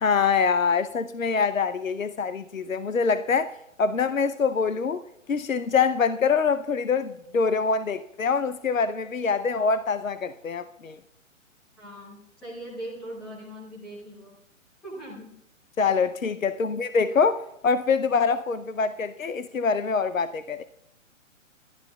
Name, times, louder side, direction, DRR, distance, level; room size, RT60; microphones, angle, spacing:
voice 1, 0.0-3.5 3.8-5.0 5.3-11.0 15.8-20.6, left 5 dB, 75° left, 0.7 m, -24 dB
voice 2, 11.8-14.4 14.8-15.3, right 1 dB, ahead, 0.4 m, -40 dB
23.0 x 12.5 x 2.3 m
figure-of-eight pair, 125°, 40 cm